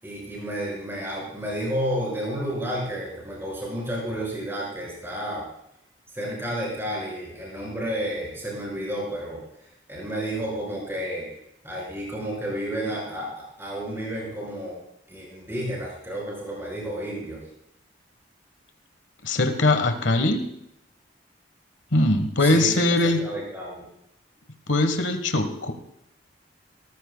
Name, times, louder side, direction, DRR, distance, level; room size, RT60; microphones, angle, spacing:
voice 1, 0.0-5.5 6.1-11.3 11.6-14.8 15.1-17.4 22.4-23.8, right 1 dB, 15° right, -4 dB, 5.2 m, -31 dB
voice 2, 19.2-20.4 21.9-23.2 24.7-25.7, left 2 dB, 75° left, 8 dB, 1.2 m, -21 dB
22.0 x 14.5 x 2.2 m, 0.78 s
head